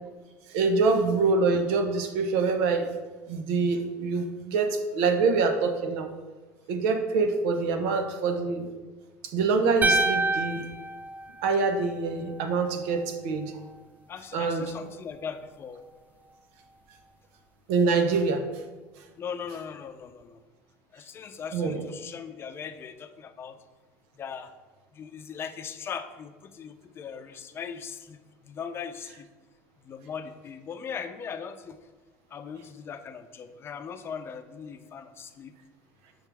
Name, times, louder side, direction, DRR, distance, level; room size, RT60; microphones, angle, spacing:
voice 1, 0.5-2.9 3.3-6.1 6.7-8.7 9.2-10.6 11.4-13.5 14.3-14.6 17.7-18.4 21.5-21.8, right 4 dB, 80° right, 6 dB, 0.9 m, -25 dB
sound 1, 9.8-12.1, right 2 dB, 25° right, 0.3 m, -27 dB
voice 2, 14.1-15.8 19.2-20.4 20.9-23.6 24.2-24.5 24.9-29.3 29.8-31.8 32.3-35.5, left 6 dB, 35° left, 8 dB, 0.6 m, -39 dB
7.2 x 5.6 x 3.5 m, 1.3 s
supercardioid pair, 115°, 7 cm